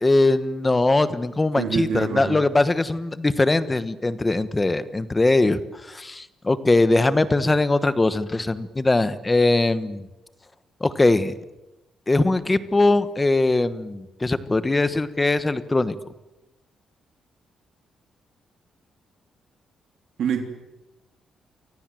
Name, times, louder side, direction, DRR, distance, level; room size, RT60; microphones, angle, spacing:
voice 1, 0.0-5.6 5.9-10.1 10.8-11.3 12.1-15.9, left 2 dB, 15° left, 13 dB, 1.2 m, -21 dB
voice 2, 1.6-2.4 20.2-20.4, right 7 dB, 60° right, 4 dB, 3.2 m, -25 dB
29.5 x 24.5 x 7.7 m, 1.0 s
cardioid pair, 175°, 0 cm